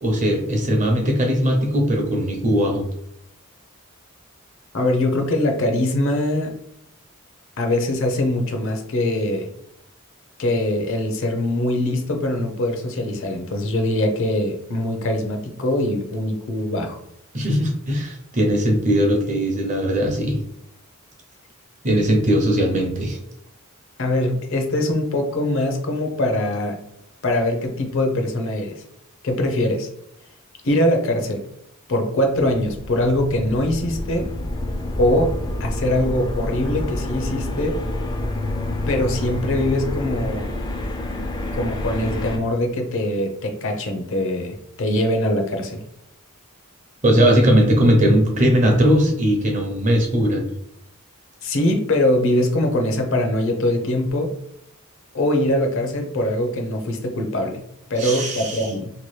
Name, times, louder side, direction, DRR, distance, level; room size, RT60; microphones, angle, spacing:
voice 1, 0.0-2.8 17.3-20.4 21.8-23.2 47.0-50.5 58.0-58.7, equal, 35° right, 2 dB, 0.6 m, -19 dB
voice 2, 4.7-6.6 7.6-9.5 10.4-17.0 24.0-26.8 27.2-28.8 29.2-29.9 30.6-31.5 31.9-34.3 35.0-35.3 35.6-37.8 38.9-40.5 41.5-45.8 51.4-54.3 55.1-57.6 57.9-58.9, left 1 dB, 60° left, 4 dB, 0.6 m, -22 dB
sound 1, 32.6-42.4, left 1 dB, 20° left, 0.4 m, -28 dB
2.9 x 2.3 x 3.1 m, 0.79 s
head